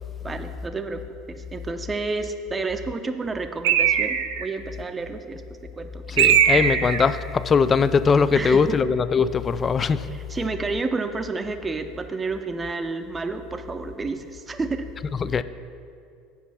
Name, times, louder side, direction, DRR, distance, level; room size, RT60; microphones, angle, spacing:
voice 1, 0.2-1.0 1.3-5.4 5.7-6.4 8.4-8.8 10.1-14.8, right 3 dB, 20° right, 7 dB, 0.6 m, -30 dB
Bird, 3.6-4.5 6.2-7.1, right 9 dB, 70° right, 0.4 m, -19 dB
voice 2, 6.1-10.1 15.2-15.4, left 5 dB, 30° left, 14 dB, 0.3 m, -21 dB
8.3 x 5.5 x 5.6 m, 2.4 s
figure-of-eight pair, 70°, 0 cm